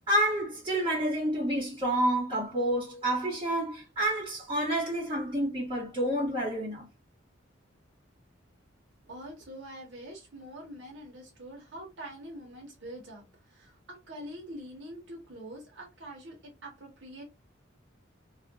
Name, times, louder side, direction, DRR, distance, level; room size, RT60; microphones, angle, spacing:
voice 1, 0.1-6.8, right 1 dB, 25° right, 1.2 m, -29 dB
voice 2, 9.0-17.2, right 1 dB, 65° right, 0.8 m, -45 dB
2.4 x 2.1 x 2.8 m
head